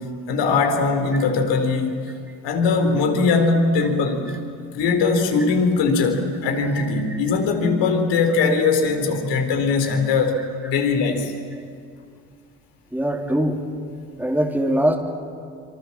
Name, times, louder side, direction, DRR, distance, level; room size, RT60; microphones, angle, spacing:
voice 1, 0.0-1.9 2.4-4.3 4.7-11.3, left 4 dB, 70° left, 5 dB, 4.2 m, -20 dB
voice 2, 12.9-13.6 14.2-14.9, right 1 dB, 5° right, -1 dB, 3.2 m, -22 dB
26.0 x 25.0 x 7.4 m, 2.2 s
hypercardioid pair, 65°, 45 cm